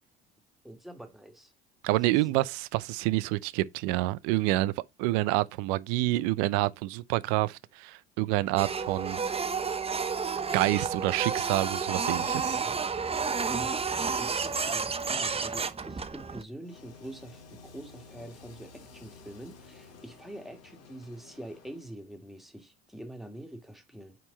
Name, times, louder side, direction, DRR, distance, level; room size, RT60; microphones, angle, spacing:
voice 1, 0.6-1.5 1.9-2.3 13.5-24.2, right 1 dB, ahead, 1.9 m, -45 dB
voice 2, 1.8-4.7 5.0-9.2 10.5-12.6, right 18 dB, 70° right, 0.6 m, -28 dB
Printer, 8.6-16.4, right 5 dB, 20° right, 0.8 m, -31 dB
sound 1, 16.6-21.9, left 4 dB, 55° left, 2.0 m, -52 dB
6.1 x 4.6 x 3.9 m
hypercardioid pair, 70°, 30 cm